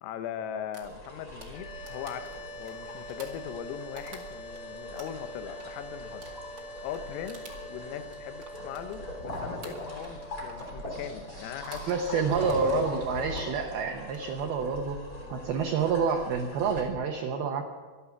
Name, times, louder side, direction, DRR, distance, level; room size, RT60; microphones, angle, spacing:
voice 1, 0.0-6.3 6.5-7.4 7.7-12.9, left 9 dB, 90° left, 9 dB, 3.7 m, -39 dB
sound 1, 0.7-4.6 5.0-9.2 9.6-10.2 10.5-10.8 11.5-12.0 12.3-13.5 14.0-14.4, right 3 dB, 50° right, 1.3 m, -50 dB
sound 2, 0.8-16.8, left 1 dB, 20° left, 3.1 m, -42 dB
sound 3, 1.5-12.6, equal, 60° left, 3.0 m, -45 dB
voice 2, 11.9-15.0 15.3-17.6, right 5 dB, 85° right, 4 dB, 2.2 m, -28 dB
24.5 x 8.5 x 6.0 m, 1.4 s
omnidirectional pair, 5.8 m